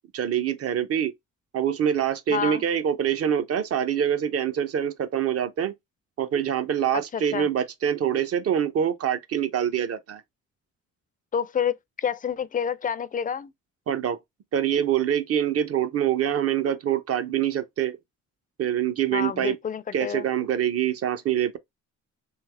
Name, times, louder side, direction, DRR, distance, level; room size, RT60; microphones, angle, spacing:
voice 1, 0.1-1.1 1.5-5.7 6.2-10.2 13.9-14.2 14.5-18.0 18.6-19.6 19.9-21.6, right 9 dB, 50° right, 0.7 m, -25 dB
voice 2, 2.3-2.6 7.1-7.5 11.3-13.5 19.1-20.3, left 8 dB, 30° left, 0.4 m, -28 dB
3.3 x 3.1 x 3.3 m
cardioid pair, 90°, 30 cm